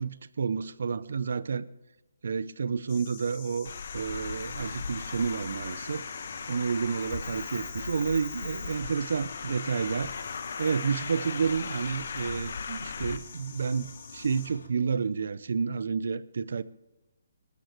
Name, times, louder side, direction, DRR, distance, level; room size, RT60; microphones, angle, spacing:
voice 1, 0.0-1.7 2.2-6.0 6.5-10.1 10.6-16.6, right 5 dB, 65° right, 0.7 m, -30 dB
sound 1, 2.9-14.5, left 6 dB, 30° left, 2.6 m, -48 dB
Traffic noise roadway noise, 3.6-13.2, left 5 dB, 60° left, 1.1 m, -38 dB
Engine, 4.0-14.7, left 3 dB, 75° left, 2.1 m, -49 dB
22.5 x 13.0 x 3.2 m
figure-of-eight pair, 150°, 0 cm